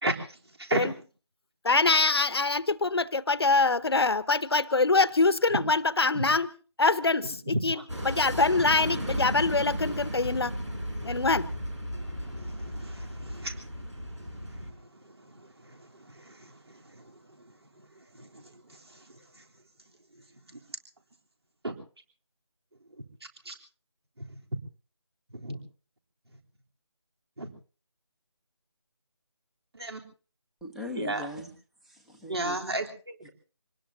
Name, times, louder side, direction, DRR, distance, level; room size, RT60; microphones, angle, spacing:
voice 1, 0.0-0.9 5.5-5.6 6.1-6.2 7.5-7.8 10.9-11.3 11.9-13.7 14.3-14.7 15.1-17.0 18.1-18.4 18.7-19.0 19.3-19.4 20.5-20.6 21.6-21.8 23.5-23.6 24.2-24.3 25.3-25.6 27.4-27.5 29.7-30.0 31.0-31.3 32.3-33.3, right 2 dB, 60° right, 2 dB, 3.4 m, -35 dB
voice 2, 1.6-6.5 6.8-7.7 8.0-10.5 11.0-11.4, left 3 dB, 60° left, 16 dB, 0.9 m, -24 dB
sound 1, 7.9-14.7, equal, 85° right, 6.1 m, -35 dB
voice 3, 30.6-31.5 31.8-32.6 33.2-33.3, left 1 dB, ahead, 2 dB, 0.9 m, -39 dB
26.0 x 19.5 x 2.7 m, 0.36 s
figure-of-eight pair, 160°, 15 cm